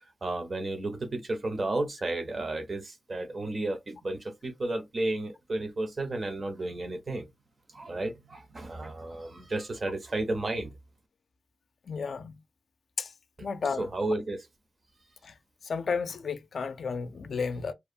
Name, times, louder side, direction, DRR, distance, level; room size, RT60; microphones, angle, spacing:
voice 1, 0.2-7.3 7.7-10.8 13.8-14.5, right 2 dB, 40° right, 0.6 m, -32 dB
voice 2, 11.9-12.4 13.0-13.1 13.4-13.9 15.2-15.3 15.6-17.7, left 5 dB, 75° left, 0.3 m, -32 dB
2.8 x 2.1 x 2.4 m
wide cardioid pair, 145°, 0 cm